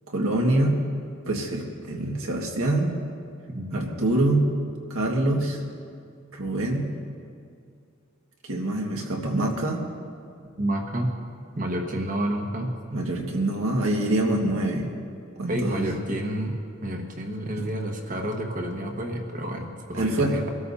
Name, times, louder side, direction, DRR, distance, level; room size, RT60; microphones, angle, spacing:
voice 1, 0.1-0.8 1.3-2.9 3.7-4.4 4.9-5.6 6.3-6.9 8.5-9.8 12.9-14.9 15.4-15.9 17.6-17.7 19.9-20.4, right 1 dB, 75° right, 0 dB, 1.7 m, -25 dB
voice 2, 3.5-3.9 10.6-11.1 11.5-12.8 15.5-16.6 16.8-20.5, right 1 dB, 35° right, 2 dB, 1.3 m, -29 dB
23.5 x 13.0 x 2.8 m, 2.3 s
head